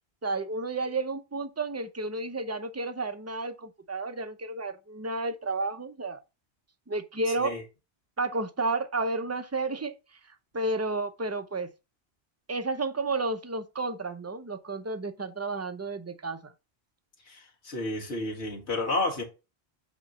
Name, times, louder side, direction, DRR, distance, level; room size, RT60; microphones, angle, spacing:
voice 1, 0.2-6.2 6.9-7.6 8.2-10.0 10.3-11.7 12.5-16.5, right 3 dB, 20° right, 0.5 m, -31 dB
voice 2, 17.3-19.2, left 2 dB, 80° left, 2.4 m, -31 dB
7.9 x 3.1 x 5.4 m
omnidirectional pair, 1.1 m